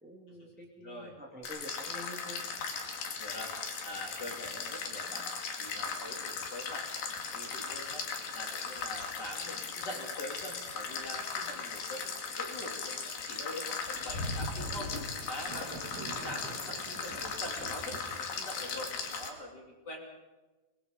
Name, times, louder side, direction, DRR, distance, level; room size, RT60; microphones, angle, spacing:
voice 1, 0.0-2.4, equal, 5° right, -1 dB, 1.9 m, -47 dB
voice 2, 0.8-1.1 3.2-3.5 3.8-6.9 7.3-8.1 8.3-14.9 15.3-15.9 16.2-20.1, left 1 dB, 30° left, 0 dB, 3.4 m, -44 dB
sound 1, 1.4-19.3, left 5 dB, 70° left, 3.8 m, -38 dB
Thunder / Rain, 13.6-19.1, right 2 dB, 30° right, 3.8 m, -46 dB
24.0 x 20.5 x 5.3 m, 1.2 s
omnidirectional pair, 4.0 m